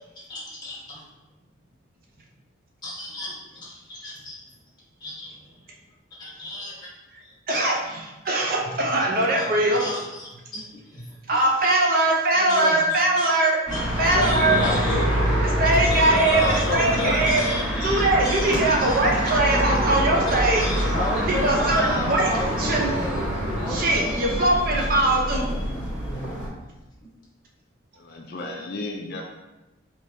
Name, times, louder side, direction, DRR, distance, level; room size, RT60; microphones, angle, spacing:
voice 1, 0.3-1.0 2.8-4.3 5.0-5.7 6.2-6.9 7.2-7.6 9.3-9.4 9.8-11.1 12.5-12.6 13.2-13.3 13.7-15.1 15.9-19.5 20.3-24.5, left 1 dB, 20° left, -6 dB, 1.2 m, -33 dB
voice 2, 7.5-9.8 11.3-13.6 14.0-14.6 15.6-17.4 17.8-20.7 21.3-22.3 22.6-22.9 23.7-25.6, right 2 dB, 45° right, -1 dB, 0.6 m, -21 dB
voice 3, 12.4-12.8 14.1-15.1 15.9-17.2 28.0-29.2, left 2 dB, 50° left, 1 dB, 0.3 m, -30 dB
sound 1, 13.7-26.5, equal, 5° right, 1.1 m, -26 dB
4.8 x 2.9 x 2.7 m, 1.1 s
head